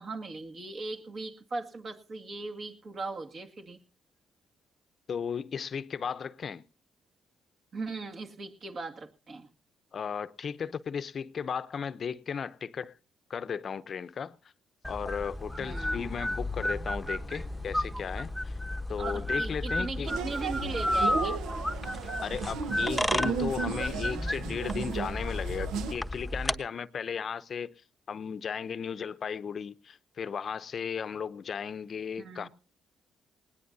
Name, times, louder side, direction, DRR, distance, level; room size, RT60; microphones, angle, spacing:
voice 1, 0.0-3.8 7.7-9.5 15.6-16.0 19.0-21.4 32.2-32.5, right 3 dB, 50° right, 2.2 m, -38 dB
voice 2, 5.1-6.6 9.9-12.9 13.3-14.4 14.9-18.6 18.9-20.1 22.2-27.7 28.1-32.5, left 7 dB, 50° left, 0.7 m, -35 dB
sound 1, 14.8-26.6, left 1 dB, ahead, 1.1 m, -32 dB
sound 2, 20.1-25.9, right 6 dB, 90° right, 1.0 m, -35 dB
20.0 x 18.0 x 2.7 m
cardioid pair, 90°, 0 cm